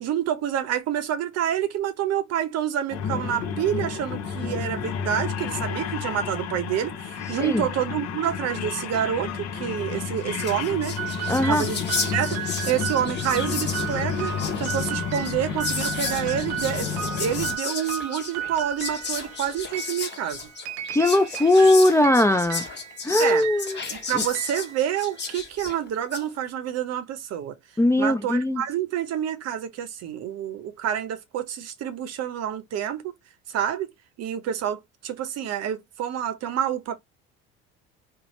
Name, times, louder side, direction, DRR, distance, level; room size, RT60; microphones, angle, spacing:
voice 1, 0.0-11.0 11.5-11.8 12.1-20.5 23.2-23.5 23.9-27.5 28.0-33.1 33.5-33.9 34.2-37.0, right 10 dB, 50° right, 0.7 m, -28 dB
sound 1, 2.9-17.6, left 7 dB, 55° left, 0.7 m, -31 dB
Whispering, 10.0-10.1 10.3-26.3, left 5 dB, 35° left, 1.1 m, -34 dB
sound 2, 11.0-25.4, right 10 dB, 80° right, 0.6 m, -35 dB
voice 2, 11.3-11.7 20.9-22.7 23.0-23.8 24.1-24.2 27.8-28.6, left 1 dB, 10° left, 0.4 m, -19 dB
2.7 x 2.1 x 3.0 m
hypercardioid pair, 70°, 32 cm